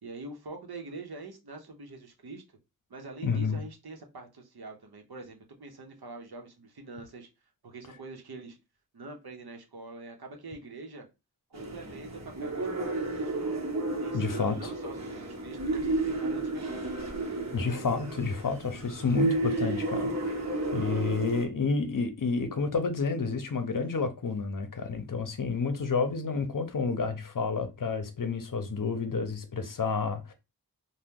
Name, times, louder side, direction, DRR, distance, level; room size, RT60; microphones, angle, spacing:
voice 1, 0.0-2.4 2.9-7.3 7.6-8.6 8.9-11.1 11.5-13.7 14.0-17.0, right 3 dB, 85° right, 0.8 m, -45 dB
voice 2, 3.2-3.6 14.1-14.6 17.5-20.4 20.7-30.3, left 4 dB, 60° left, 0.7 m, -30 dB
sound 1, 11.5-21.4, right 2 dB, 45° right, 0.9 m, -32 dB
2.8 x 2.2 x 3.6 m
wide cardioid pair, 60°, 37 cm